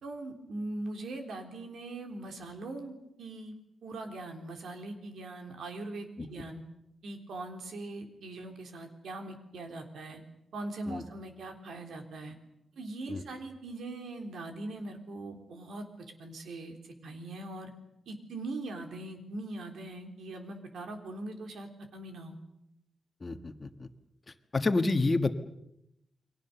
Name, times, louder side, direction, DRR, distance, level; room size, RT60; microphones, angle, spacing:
voice 1, 0.0-3.5 3.8-6.6 7.0-10.2 10.5-12.3 12.8-15.9 16.2-17.7 18.1-22.4, right 2 dB, 90° right, 5 dB, 3.8 m, -41 dB
voice 2, 23.2-23.9 24.5-25.3, left 3 dB, 25° left, 8 dB, 1.4 m, -28 dB
30.0 x 23.0 x 6.9 m, 0.84 s
wide cardioid pair, 160°, 0 cm